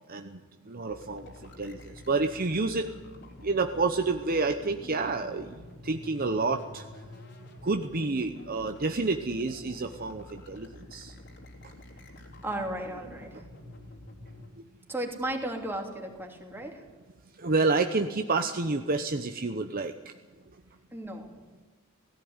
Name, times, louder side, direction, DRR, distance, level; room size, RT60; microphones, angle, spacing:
voice 1, 0.1-0.4 0.7-2.9 3.4-5.5 5.8-6.8 7.6-11.1 17.4-19.9, right 3 dB, 40° right, 7 dB, 0.9 m, -29 dB
sound 1, 0.9-14.5, left 1 dB, 50° left, 3.6 m, -48 dB
voice 2, 12.4-13.4 14.9-16.8 20.9-21.3, right 1 dB, 10° right, 1 dB, 3.0 m, -35 dB
17.5 x 16.0 x 9.6 m, 1.4 s
head